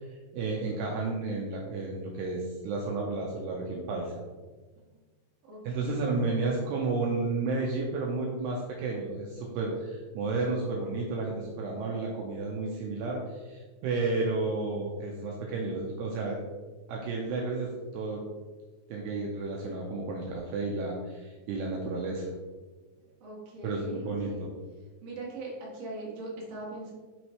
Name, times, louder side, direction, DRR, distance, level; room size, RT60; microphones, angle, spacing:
voice 1, 0.1-4.1 5.6-16.4 16.9-18.2 18.9-22.3 23.6-24.5, right 3 dB, 85° right, -2 dB, 2.5 m, -32 dB
voice 2, 5.5-6.1 23.2-24.4 25.0-26.9, right 2 dB, 55° right, -5 dB, 1.7 m, -40 dB
6.4 x 6.0 x 3.1 m, 1.3 s
omnidirectional pair, 5.4 m